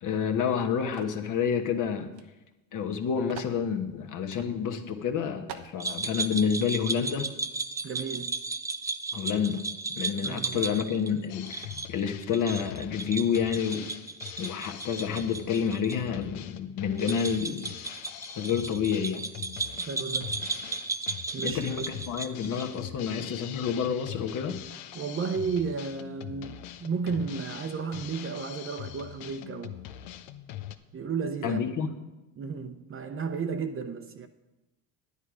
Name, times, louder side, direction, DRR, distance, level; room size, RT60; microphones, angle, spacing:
voice 1, 0.0-2.1 2.7-7.3 9.1-9.7 10.0-13.9 14.4-17.7 18.4-19.3 21.4-24.6 31.4-31.9, left 7 dB, 45° left, 1.3 m, -29 dB
sound 1, 0.9-1.2 2.1-2.3 2.5-2.6 3.3-3.6 4.3-4.5 5.0-5.1 5.5-5.8, right 9 dB, 85° right, 1.0 m, -43 dB
sound 2, 5.8-16.0 16.2-16.3 17.0-22.7, right 3 dB, 10° right, 0.3 m, -35 dB
voice 2, 7.8-8.4 10.2-10.7 19.8-20.4 21.3-21.7 24.9-29.8 30.9-31.6 32.4-34.3, right 5 dB, 30° right, 0.8 m, -33 dB
Drum kit, 11.3-30.7, left 12 dB, 80° left, 0.8 m, -43 dB
10.5 x 10.0 x 4.9 m
supercardioid pair, 95°, 42 cm